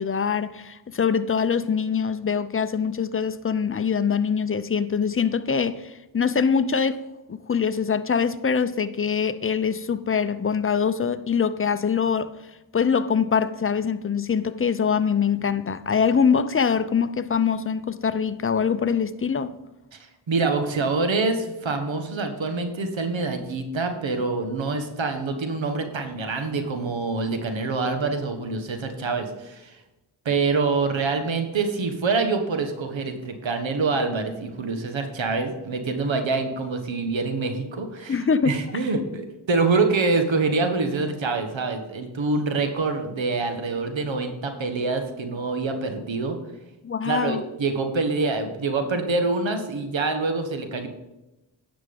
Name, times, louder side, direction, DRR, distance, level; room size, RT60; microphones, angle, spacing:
voice 1, 0.0-7.0 7.3-12.3 12.7-19.5 38.1-38.5 46.8-47.4, left 6 dB, 25° left, 0.6 m, -23 dB
voice 2, 20.3-29.8 30.2-38.2 38.4-46.4 47.0-50.9, right 3 dB, 70° right, 1.4 m, -25 dB
10.0 x 6.1 x 5.4 m
cardioid pair, 50°, 48 cm